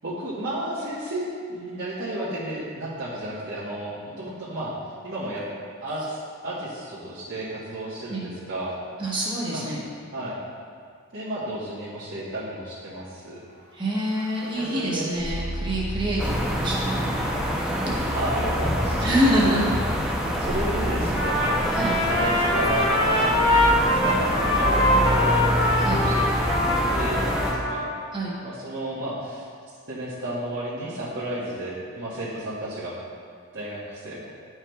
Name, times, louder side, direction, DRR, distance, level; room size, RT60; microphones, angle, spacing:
voice 1, 0.0-4.8 5.0-5.5 5.8-6.2 6.4-8.7 9.5-9.6 10.1-10.4 11.1-13.4 14.5-15.1 18.1-19.0 19.4-19.6 20.4-23.3 23.7-26.3 26.9-27.9 28.4-29.5 29.9-33.0 33.5-34.3, right 1 dB, 55° right, -11 dB, 1.2 m, -32 dB
voice 2, 9.0-9.8 13.7-17.3 17.6-18.1 19.0-19.6 21.7-21.9 25.8-26.0 28.1-28.3, equal, 20° right, -5 dB, 1.1 m, -26 dB
sound 1, 13.5-16.8 17.3-17.8 20.4-24.5, equal, 80° right, 1.6 m, -35 dB
sound 2, 16.2-27.5, equal, 5° right, 0.6 m, -26 dB
Trumpet, 21.1-28.1, left 1 dB, 90° left, 1.5 m, -23 dB
10.5 x 4.7 x 2.3 m, 2.1 s
head